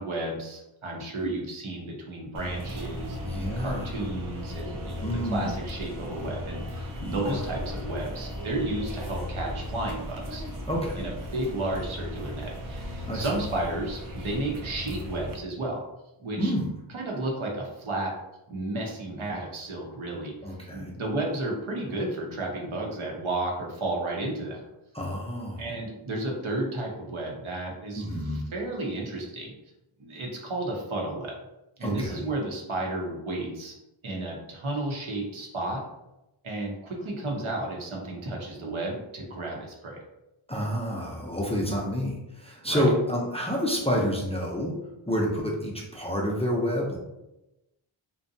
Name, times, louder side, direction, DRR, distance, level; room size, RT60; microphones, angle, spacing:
voice 1, 0.0-10.4 11.0-15.8 16.2-16.5 16.9-18.2 18.5-20.3 20.7-24.6 25.6-29.5 30.0-31.3 31.8-33.7 34.0-35.8 36.4-40.0 42.7-42.9, right 2 dB, 75° right, -1 dB, 0.8 m, -32 dB
sound 1, 2.3-15.3, left 1 dB, 45° right, 0.5 m, -36 dB
voice 2, 3.2-4.0 5.0-5.5 7.0-7.4 10.7-11.1 13.1-13.3 16.4-16.7 20.4-20.9 24.9-25.8 27.9-28.4 31.8-32.3 40.5-44.7 45.1-47.0, equal, 15° left, -3 dB, 0.4 m, -29 dB
2.6 x 2.1 x 2.6 m, 0.94 s
wide cardioid pair, 65°, 49 cm